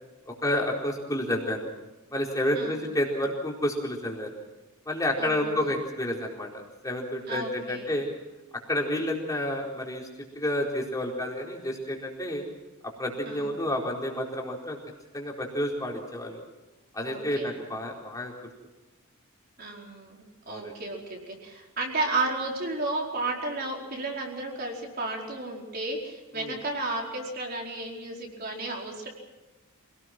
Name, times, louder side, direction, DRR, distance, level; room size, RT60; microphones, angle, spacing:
voice 1, 0.3-1.7 2.1-4.3 4.9-8.1 8.7-10.1 10.3-12.4 12.8-14.8 15.1-16.4 16.9-18.3 20.5-20.7 26.4-26.5, left 1 dB, 15° left, -1 dB, 4.4 m, -30 dB
voice 2, 5.2-5.7 7.3-7.9 13.2-13.5 17.0-17.5 19.6-29.1, right 2 dB, 45° right, -1 dB, 4.7 m, -33 dB
26.5 x 18.5 x 6.1 m, 1.1 s
head